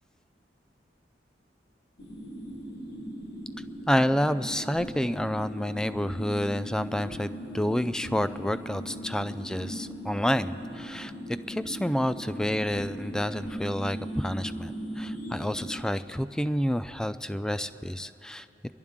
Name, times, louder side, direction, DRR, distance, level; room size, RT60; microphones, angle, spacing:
sound 1, 2.0-15.8, equal, 70° left, 1.9 m, -39 dB
voice 1, 3.9-11.1 11.5-18.5, equal, 5° left, 12 dB, 0.3 m, -29 dB
26.5 x 11.5 x 3.7 m, 2.9 s
head